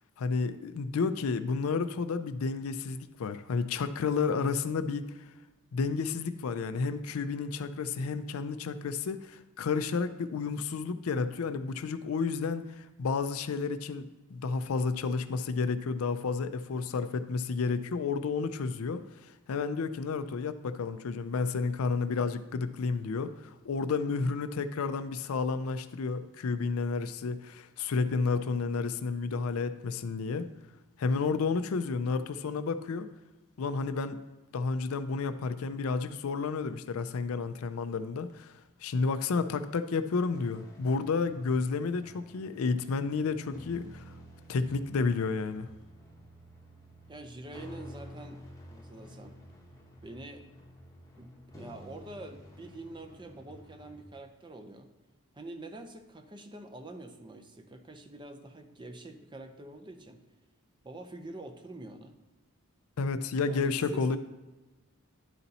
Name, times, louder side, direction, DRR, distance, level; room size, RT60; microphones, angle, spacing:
voice 1, 0.2-5.1 5.7-30.5 31.0-33.1 33.6-34.2 34.5-38.5 38.8-44.0 44.5-45.7 63.0-64.2, left 4 dB, 65° left, 11 dB, 0.4 m, -31 dB
sound 1, 40.3-54.0, equal, 15° left, 0.9 m, -51 dB
voice 2, 47.1-48.4 48.7-49.4 50.0-50.4 51.2-54.9 55.3-60.2 60.8-62.1 63.5-64.2, right 2 dB, 20° right, 5 dB, 0.6 m, -46 dB
11.0 x 4.1 x 4.1 m, 1.1 s
head